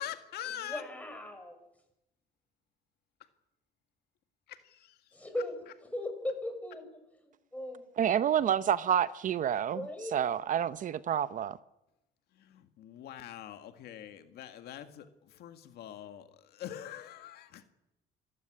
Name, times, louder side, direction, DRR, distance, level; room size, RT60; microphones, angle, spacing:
voice 1, 0.0-0.8 4.5-5.2 12.4-17.6, left 11 dB, 75° left, 1.9 m, -44 dB
voice 2, 0.6-1.6 5.1-5.5 5.9-7.9 9.7-10.2, left 1 dB, 10° left, 6.5 m, -38 dB
voice 3, 8.0-9.8 10.1-11.6, right 9 dB, 50° right, 0.8 m, -28 dB
27.0 x 14.5 x 9.9 m
cardioid pair, 110°, 17 cm